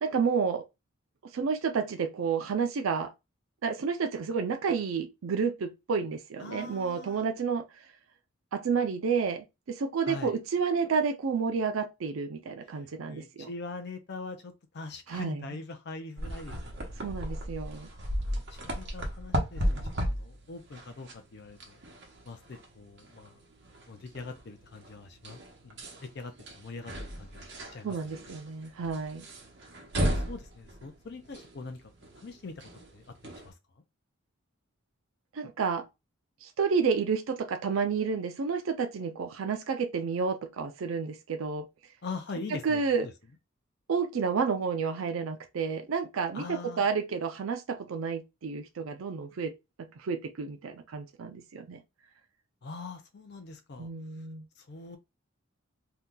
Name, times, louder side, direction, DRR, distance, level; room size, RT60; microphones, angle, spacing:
voice 1, 0.0-0.6 1.2-3.1 3.6-7.7 8.5-13.5 15.1-15.5 17.0-17.9 27.8-29.3 35.3-35.9 36.4-41.7 42.6-43.0 43.9-49.5 49.8-51.8 53.8-54.5, right 5 dB, 80° right, 0.4 m, -30 dB
voice 2, 6.4-7.3 10.0-10.4 12.7-17.3 18.2-21.8 22.3-23.4 23.9-28.0 28.3-28.4 30.1-33.5 42.0-43.1 46.3-46.8 52.6-53.9 54.6-55.0, left 3 dB, 55° left, 0.5 m, -43 dB
sound 1, 16.2-33.5, equal, 55° right, 0.9 m, -36 dB
2.8 x 2.2 x 3.6 m
head